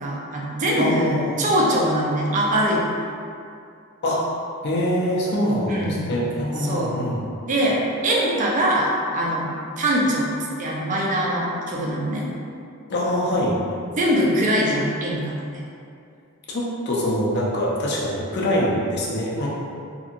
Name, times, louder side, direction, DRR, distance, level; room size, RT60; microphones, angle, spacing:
voice 1, 0.0-2.8 5.7-6.0 6.6-6.9 7.5-10.3 10.6-12.3 14.0-15.6, right 1 dB, 35° right, -3 dB, 0.4 m, -22 dB
voice 2, 0.8-1.4 4.0-4.3 4.6-7.2 12.9-13.6 16.5-19.5, equal, 55° left, -5 dB, 0.5 m, -24 dB
2.7 x 2.7 x 2.5 m, 2.4 s
head